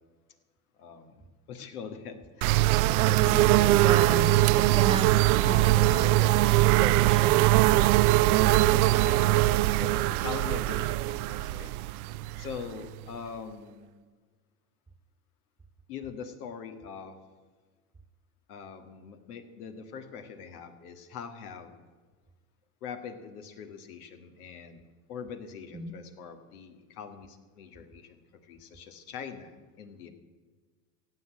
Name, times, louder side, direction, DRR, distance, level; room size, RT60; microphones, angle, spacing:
voice 1, 0.8-4.3 8.9-11.7 12.4-13.9 15.9-17.2 18.5-21.9 22.8-24.8 25.1-30.1, left 6 dB, 80° left, 7 dB, 1.9 m, -43 dB
sound 1, 2.4-13.0, right 17 dB, 75° right, 0.6 m, -22 dB
voice 2, 3.8-5.1 5.4-7.9 25.7-25.9, right 3 dB, 10° right, 11 dB, 1.4 m, -35 dB
16.0 x 8.1 x 8.5 m, 1.4 s
hypercardioid pair, 90°, 44 cm